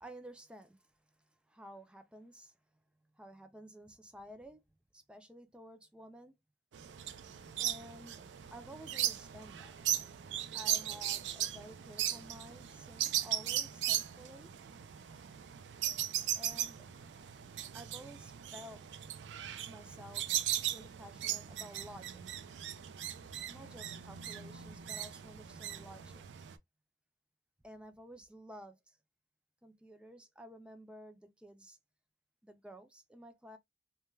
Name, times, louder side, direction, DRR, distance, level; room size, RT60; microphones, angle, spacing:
voice 1, 0.0-2.5 3.1-4.6 4.9-6.3 7.6-8.2 8.5-9.8 10.5-14.5 16.3-16.9 17.7-18.9 19.6-22.5 23.5-26.2 27.6-29.0 29.6-31.8 32.4-33.6, equal, 5° right, 0.3 m, -53 dB
sound 1, 6.7-26.5, right 11 dB, 90° right, 0.4 m, -38 dB
2.2 x 2.2 x 3.1 m
head